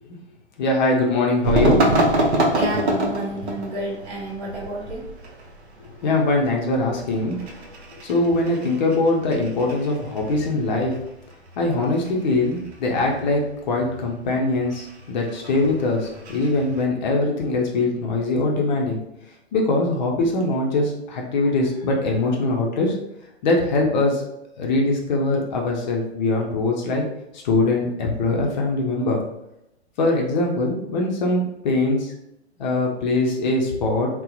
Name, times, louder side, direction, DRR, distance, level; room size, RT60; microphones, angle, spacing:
voice 1, 0.6-1.8 6.0-7.4 8.0-10.9 11.6-13.4 13.7-19.0 19.5-22.9 23.4-24.2 24.6-27.0 27.4-29.2 30.0-32.1 32.6-34.1, left 2 dB, 45° left, -1 dB, 0.5 m, -22 dB
sound 1, 1.4-16.8, right 1 dB, 70° right, 0.6 m, -27 dB
voice 2, 2.2-5.1, right 1 dB, 25° right, -3 dB, 0.5 m, -30 dB
2.6 x 2.0 x 2.3 m, 0.84 s
figure-of-eight pair, 115°, 34 cm